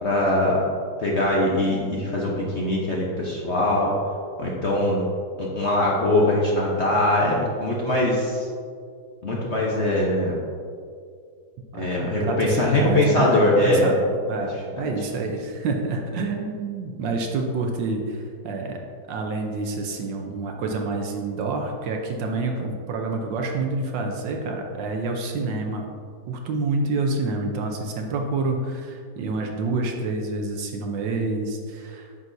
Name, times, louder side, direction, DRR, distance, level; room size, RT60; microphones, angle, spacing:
voice 1, 0.0-0.6 1.0-3.9 4.4-5.0 5.4-8.5 9.2-10.4 11.8-13.9 14.8-14.9, left 1 dB, 55° left, -4 dB, 0.8 m, -22 dB
voice 2, 11.7-18.8 19.1-25.9 26.3-32.1, right 3 dB, 70° right, 2 dB, 1.3 m, -28 dB
9.3 x 6.2 x 2.7 m, 2.2 s
omnidirectional pair, 2.3 m